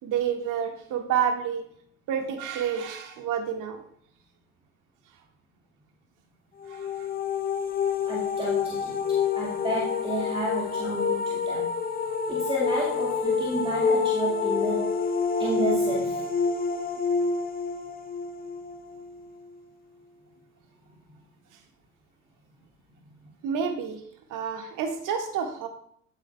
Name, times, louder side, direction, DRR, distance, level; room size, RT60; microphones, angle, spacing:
voice 1, 0.0-1.6 2.1-3.8 6.7-7.1 17.0-17.1 23.4-24.0 24.3-25.7, right 7 dB, 50° right, 3 dB, 1.8 m, -29 dB
sound 1, 6.6-19.5, left 5 dB, 20° left, 0.8 m, -28 dB
voice 2, 8.1-11.7 12.3-14.9 15.4-16.3, equal, 15° right, -5 dB, 2.0 m, -31 dB
12.0 x 8.1 x 2.3 m, 0.64 s
hypercardioid pair, 70°, 40 cm